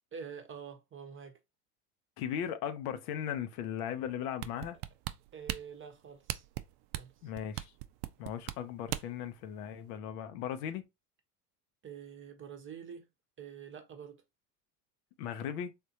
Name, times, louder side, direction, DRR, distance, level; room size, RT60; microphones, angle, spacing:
voice 1, 0.1-1.4 5.3-6.4 6.9-7.1 11.8-13.1 13.4-14.2, right 7 dB, 25° right, 0.8 m, -46 dB
voice 2, 2.2-4.8 7.2-7.7 8.2-10.8 15.2-15.7, left 9 dB, 70° left, 0.7 m, -37 dB
sound 1, 4.4-9.3 9.7-9.8, right 15 dB, 55° right, 0.5 m, -38 dB
3.6 x 2.4 x 2.7 m
hypercardioid pair, 80°, 48 cm